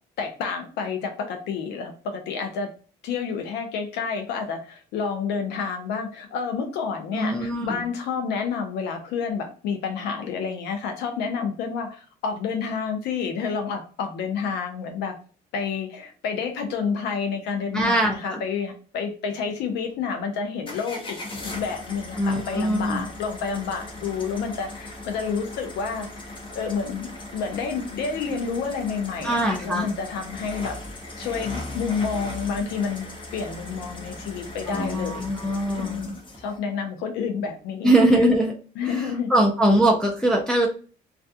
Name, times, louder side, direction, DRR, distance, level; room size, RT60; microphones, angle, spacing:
voice 1, 0.2-2.7 3.0-15.1 15.5-33.1 33.3-35.2 35.7-38.3 38.8-39.3, left 6 dB, 80° left, 4 dB, 0.5 m, -29 dB
voice 2, 7.1-7.8 17.7-18.4 22.2-23.0 29.2-29.9 34.7-36.2 37.8-38.5 38.8-40.7, right 1 dB, 5° left, -1 dB, 0.4 m, -22 dB
sound 1, 20.7-36.6, left 1 dB, 30° left, 0.8 m, -38 dB
2.3 x 2.2 x 2.6 m, 0.39 s
cardioid pair, 110°, 17 cm